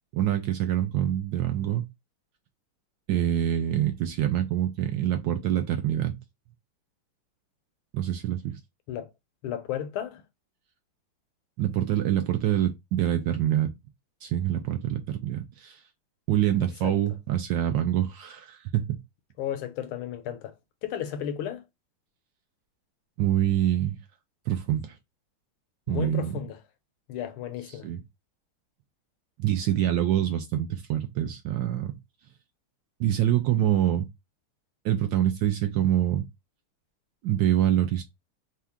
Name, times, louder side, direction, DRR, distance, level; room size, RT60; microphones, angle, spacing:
voice 1, 0.1-1.9 3.1-6.2 7.9-8.6 11.6-13.7 14.2-15.8 16.3-19.0 23.2-24.0 24.5-24.9 25.9-26.3 27.8-28.0 29.4-32.0 33.0-34.1 34.8-36.2 37.2-38.0, right 11 dB, 70° right, 1.1 m, -25 dB
voice 2, 9.4-10.2 16.8-16.9 19.4-20.5 20.8-21.6 25.9-26.6 27.1-27.9, left 10 dB, 75° left, 1.5 m, -33 dB
4.4 x 2.4 x 3.5 m
omnidirectional pair, 2.4 m